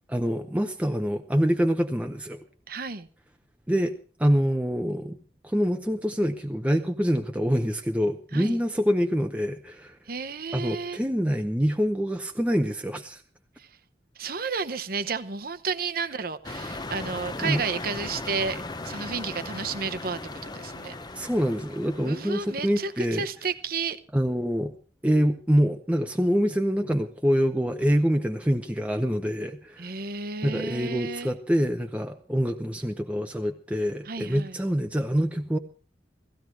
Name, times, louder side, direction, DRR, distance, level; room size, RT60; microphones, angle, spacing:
voice 1, 0.1-2.4 3.7-3.9 4.2-5.2 5.4-10.0 10.5-13.2 17.4-17.6 21.1-23.3 24.1-24.7 25.0-29.9 30.4-35.6, equal, 10° right, 0.7 m, -25 dB
voice 2, 2.7-3.1 8.3-8.6 10.1-11.0 13.6-13.7 14.2-20.2 20.5-20.9 22.0-24.0 29.8-31.3 34.1-34.6, right 5 dB, 55° right, 1.0 m, -32 dB
sound 1, 16.4-23.0, left 2 dB, 25° left, 0.8 m, -38 dB
17.0 x 15.5 x 4.6 m
head